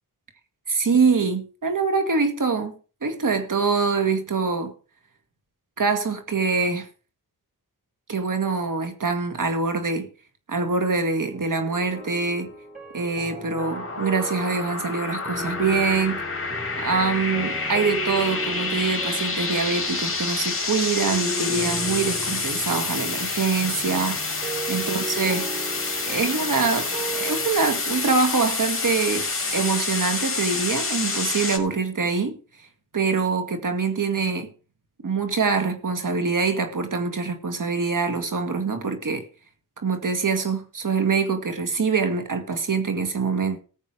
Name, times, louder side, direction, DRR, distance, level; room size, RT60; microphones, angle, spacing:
voice 1, 0.7-4.7 5.8-6.9 8.1-10.1 10.5-12.5 12.9-16.2 16.8-24.2 24.7-25.5 26.1-32.7 32.9-34.5 35.0-39.3 39.8-43.6, right 4 dB, 55° right, 2.1 m, -24 dB
sound 1, 11.1-27.5, right 2 dB, 20° right, 7.2 m, -37 dB
sound 2, 13.6-31.6, left 4 dB, 35° left, 2.9 m, -28 dB
14.5 x 8.2 x 4.9 m
cardioid pair, 55°, 38 cm